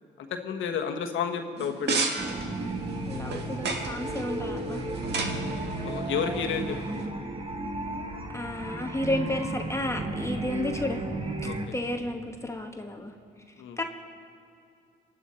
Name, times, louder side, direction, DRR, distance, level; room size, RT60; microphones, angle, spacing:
voice 1, 0.2-2.1 5.8-7.1 11.4-11.7 13.6-13.8, left 7 dB, 80° left, 5 dB, 1.3 m, -31 dB
sound 1, 1.6-7.1, right 4 dB, 60° right, 1.7 m, -34 dB
sound 2, 2.2-11.7, right 2 dB, 25° right, 1.3 m, -34 dB
voice 2, 3.1-4.8 5.8-5.9 8.3-11.0 11.7-13.1 13.8-13.9, left 1 dB, 15° left, 3 dB, 1.2 m, -32 dB
25.0 x 10.0 x 4.4 m, 2.5 s
cardioid pair, 90°, 20 cm